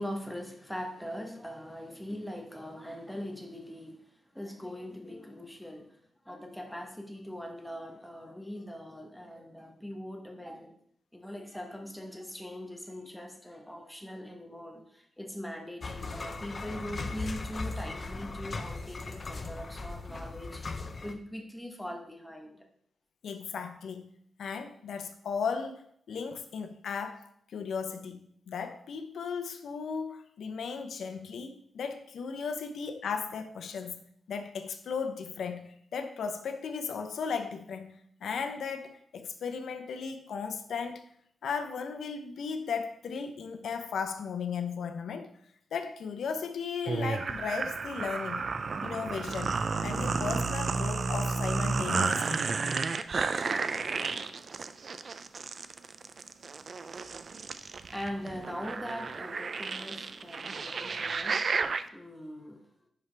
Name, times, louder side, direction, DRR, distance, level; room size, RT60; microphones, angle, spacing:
voice 1, 0.0-10.7 11.1-22.7 57.6-62.6, equal, ahead, 1.0 m, -41 dB
sound 1, 15.8-21.1, left 3 dB, 35° left, 0.6 m, -38 dB
voice 2, 23.2-24.1 24.4-28.2 28.5-34.0 34.3-41.0 41.4-45.3 45.7-48.5 48.8-52.5, left 6 dB, 85° left, 0.7 m, -36 dB
sound 2, 46.9-61.8, right 4 dB, 45° right, 0.4 m, -32 dB
11.0 x 4.7 x 3.3 m
wide cardioid pair, 150°, 0 cm